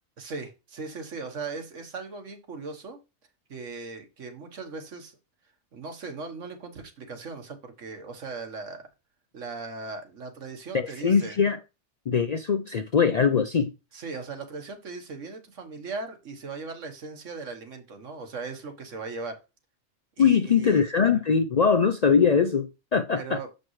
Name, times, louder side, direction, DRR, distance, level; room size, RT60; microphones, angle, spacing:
voice 1, 0.2-3.0 3.5-5.2 5.7-8.9 9.3-11.4 13.9-19.4 20.2-20.9 23.1-23.5, right 4 dB, 85° right, 1.7 m, -38 dB
voice 2, 10.7-11.6 12.1-13.7 20.2-23.4, left 6 dB, 55° left, 0.4 m, -22 dB
7.5 x 5.2 x 3.1 m
omnidirectional pair, 1.3 m